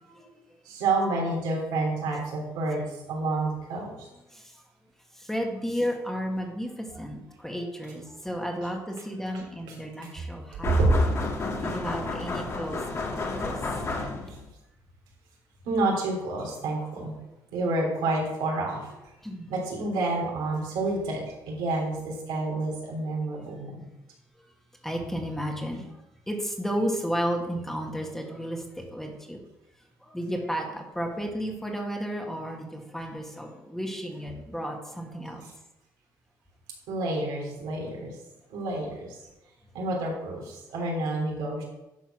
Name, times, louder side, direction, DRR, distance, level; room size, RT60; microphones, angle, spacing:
voice 1, 0.7-4.1 9.7-9.8 10.6-10.9 13.9-14.1 15.7-17.2 17.5-19.0 19.5-23.9 35.4-35.5 36.9-38.2 38.5-39.2 39.7-41.6, right 2 dB, 85° right, -2 dB, 3.4 m, -29 dB
voice 2, 4.3-4.6 5.1-10.7 11.6-13.6 19.2-19.5 24.8-26.0 26.3-29.4 30.0-35.5, equal, 5° left, 1 dB, 2.0 m, -33 dB
sound 1, 10.6-14.5, left 3 dB, 35° left, 2.0 m, -32 dB
11.0 x 4.5 x 6.1 m, 0.93 s
supercardioid pair, 80°, 8 cm